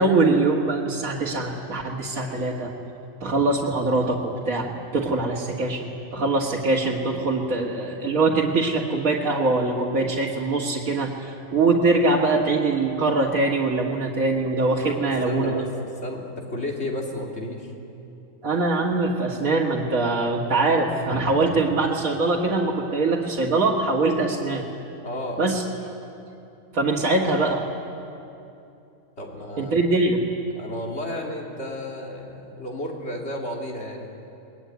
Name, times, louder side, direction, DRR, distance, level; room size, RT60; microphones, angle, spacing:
voice 1, 0.0-2.7 3.2-15.5 18.4-24.6 25.4-25.6 26.7-27.7 29.6-30.2, right 3 dB, 75° right, -4 dB, 2.2 m, -23 dB
voice 2, 14.8-15.7 16.0-17.7 25.0-25.4 29.2-29.7 30.6-34.1, left 1 dB, 50° left, -1 dB, 3.3 m, -32 dB
23.5 x 21.0 x 9.4 m, 2.7 s
omnidirectional pair, 1.5 m